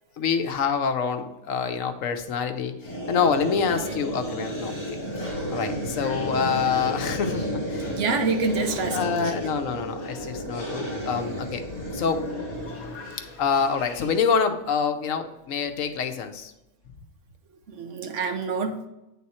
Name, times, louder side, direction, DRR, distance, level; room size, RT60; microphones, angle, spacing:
voice 1, 0.2-2.7 3.1-7.9 8.9-11.6 11.9-12.3 13.4-16.5, left 6 dB, 90° left, 6 dB, 1.2 m, -26 dB
sound 1, 2.8-13.3, equal, 15° left, 2.8 m, -32 dB
sound 2, 5.8-14.4, left 3 dB, 60° left, 1.5 m, -43 dB
voice 2, 7.9-9.3 17.7-18.9, right 4 dB, 70° right, 6 dB, 1.2 m, -27 dB
9.5 x 3.9 x 4.2 m, 0.94 s
omnidirectional pair, 1.3 m